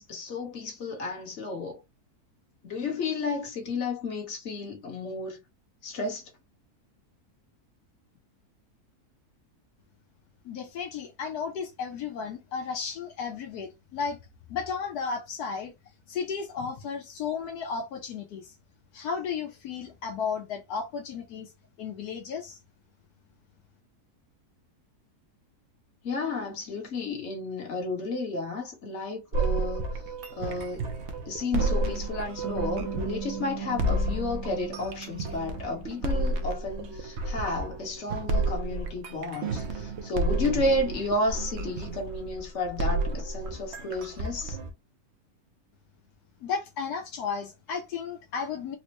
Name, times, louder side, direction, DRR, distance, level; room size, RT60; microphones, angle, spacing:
voice 1, 0.0-1.8 2.6-5.4 5.8-6.2 26.0-29.9 30.3-30.9 31.3-44.6, left 2 dB, 50° left, 1.4 m, -32 dB
voice 2, 10.4-14.2 14.5-15.7 16.1-18.5 18.9-21.5 21.8-22.6 46.4-48.8, left 6 dB, 80° left, 1.2 m, -34 dB
sound 1, 29.3-44.7, right 2 dB, 60° right, 0.8 m, -31 dB
Bass guitar, 32.4-36.7, right 8 dB, 90° right, 1.4 m, -40 dB
4.2 x 2.1 x 2.8 m
omnidirectional pair, 1.6 m